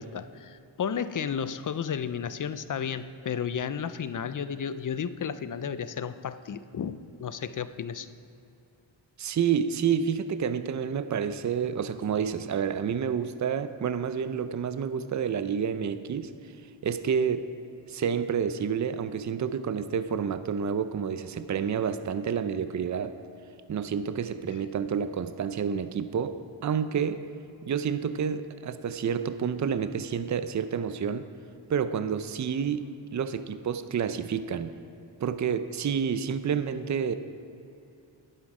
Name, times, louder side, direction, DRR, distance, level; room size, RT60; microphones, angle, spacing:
voice 1, 0.0-8.1, left 7 dB, 45° left, 13 dB, 0.5 m, -33 dB
voice 2, 9.2-16.3 16.8-17.5 17.9-23.1 23.7-27.2 27.6-31.3 31.7-34.8 35.2-37.2, right 7 dB, 40° right, 11 dB, 0.5 m, -29 dB
11.5 x 10.0 x 4.9 m, 2.8 s
wide cardioid pair, 100°, 47 cm